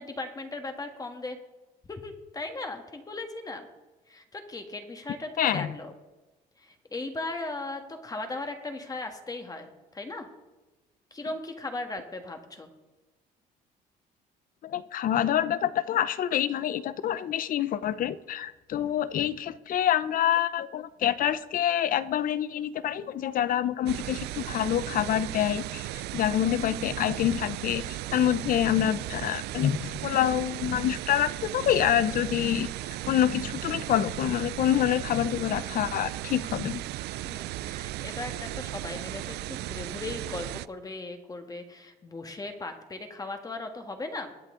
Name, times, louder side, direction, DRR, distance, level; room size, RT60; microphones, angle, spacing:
voice 1, 0.0-1.4 1.9-3.7 4.1-5.9 6.6-10.3 11.1-12.7 37.2-44.3, left 2 dB, 20° left, 5 dB, 1.6 m, -37 dB
voice 2, 5.4-5.7 14.6-32.7 33.1-36.8, left 10 dB, 55° left, 16 dB, 0.7 m, -26 dB
sound 1, 23.9-40.7, right 16 dB, 75° right, 0.4 m, -36 dB
21.5 x 7.5 x 3.8 m, 1.1 s
cardioid pair, 110°, 17 cm